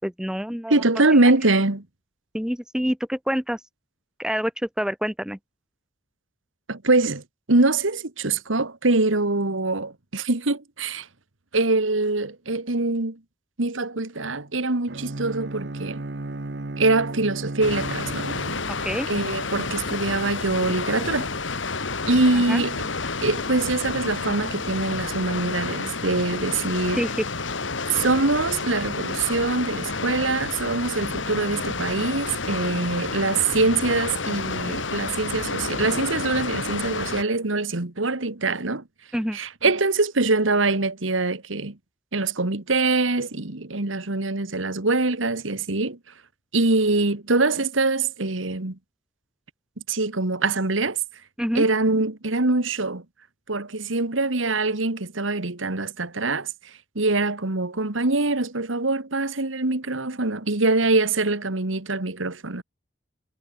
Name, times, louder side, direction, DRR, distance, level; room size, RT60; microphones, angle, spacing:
voice 1, 0.0-0.8 1.5-1.6 2.3-3.6 4.2-5.4 18.7-19.1 22.3-22.6 26.9-27.3 39.1-39.4 51.4-51.6, equal, 5° right, 1.6 m, -27 dB
voice 2, 0.7-1.8 6.7-11.1 11.5-13.2 13.6-16.0 16.8-18.4 19.1-21.3 22.1-22.8 23.2-27.0 27.9-38.8 39.3-41.8 42.1-46.0 46.5-48.8 49.9-51.0 51.6-53.0 53.5-56.5 57.0-62.6, right 3 dB, 85° right, 1.9 m, -24 dB
Bowed string instrument, 14.9-19.1, right 2 dB, 60° right, 1.0 m, -34 dB
Water, 17.6-37.2, left 4 dB, 80° left, 2.4 m, -30 dB
head